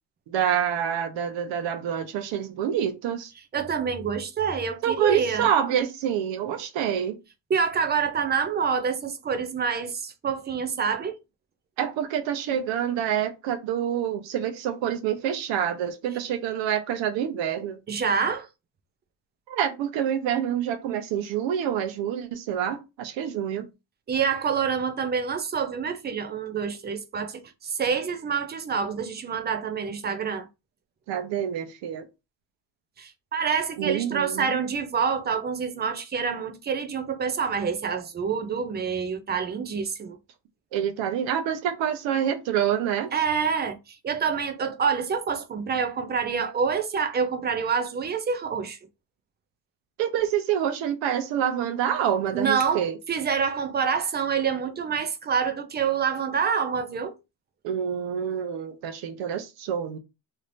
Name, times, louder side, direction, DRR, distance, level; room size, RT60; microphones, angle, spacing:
voice 1, 0.3-3.3 4.8-7.2 11.8-17.8 19.5-23.7 31.1-32.1 33.8-34.6 40.7-43.1 50.0-52.9 57.6-60.0, right 9 dB, 90° right, 0.9 m, -27 dB
voice 2, 3.5-5.5 7.5-11.2 17.9-18.5 24.1-30.5 33.0-40.2 43.1-48.8 52.3-57.1, right 6 dB, 25° right, 0.4 m, -27 dB
3.2 x 2.8 x 2.5 m
cardioid pair, 155°, 44 cm